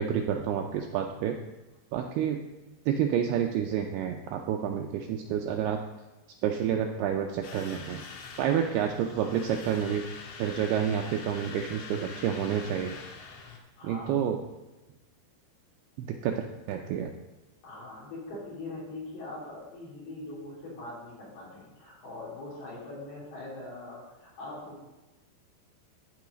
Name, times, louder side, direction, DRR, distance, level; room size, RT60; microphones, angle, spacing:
voice 1, 0.0-1.4 1.9-2.4 2.9-5.8 6.4-8.0 8.4-13.0 13.8-14.4 16.0-17.1, right 9 dB, 80° right, 3 dB, 2.3 m, -29 dB
sound 1, 7.4-13.6, left 5 dB, 80° left, 3.5 m, -44 dB
voice 2, 13.8-14.1 17.6-24.8, left 2 dB, 60° left, -6 dB, 5.1 m, -42 dB
13.5 x 4.7 x 5.1 m, 1.1 s
omnidirectional pair, 5.1 m